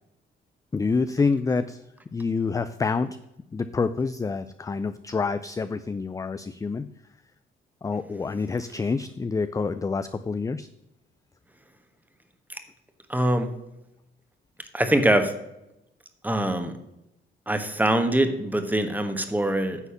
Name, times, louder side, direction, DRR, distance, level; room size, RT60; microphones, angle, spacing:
voice 1, 0.7-1.8 2.1-3.2 3.5-6.9 7.8-10.7, left 4 dB, 15° left, 12 dB, 0.4 m, -27 dB
voice 2, 13.1-13.5 14.7-15.3 16.2-16.7 17.5-19.8, right 1 dB, 10° right, 8 dB, 1.3 m, -23 dB
9.8 x 4.2 x 6.9 m, 0.88 s
cardioid pair, 90°, 20 cm